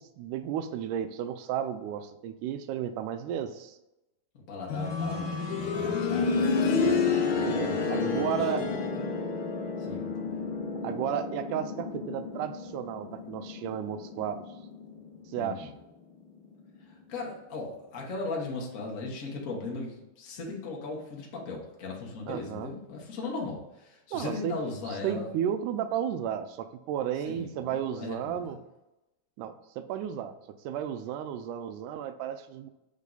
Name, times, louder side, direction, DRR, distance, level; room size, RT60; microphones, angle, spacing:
voice 1, 0.0-3.8 7.4-8.6 10.8-14.4 15.3-15.7 22.3-22.7 24.1-24.5 25.0-28.6 29.4-30.3 30.6-32.7, right 9 dB, 90° right, 9 dB, 2.1 m, -33 dB
voice 2, 4.3-5.4 5.7-6.5 7.7-9.1 9.8-10.1 15.4-15.7 16.8-25.3 27.2-28.5, left 3 dB, 60° left, -2 dB, 0.8 m, -38 dB
sound 1, 4.7-15.4 15.8-15.9 16.8-16.9, left 4 dB, 80° left, 1.2 m, -30 dB
7.3 x 3.7 x 3.9 m, 0.94 s
omnidirectional pair, 3.6 m